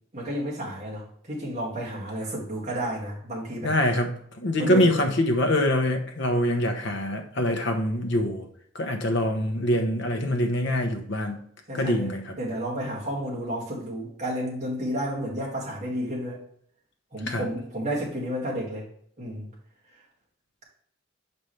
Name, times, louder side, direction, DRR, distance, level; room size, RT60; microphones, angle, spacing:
voice 1, 0.1-3.7 4.6-4.9 11.7-16.4 17.1-18.9 19.2-19.5, equal, 35° right, -4 dB, 2.0 m, -31 dB
voice 2, 3.6-8.5 8.7-11.4 11.7-12.3 17.3-17.5, left 1 dB, 55° left, 5 dB, 0.9 m, -24 dB
6.0 x 5.3 x 3.3 m, 0.65 s
head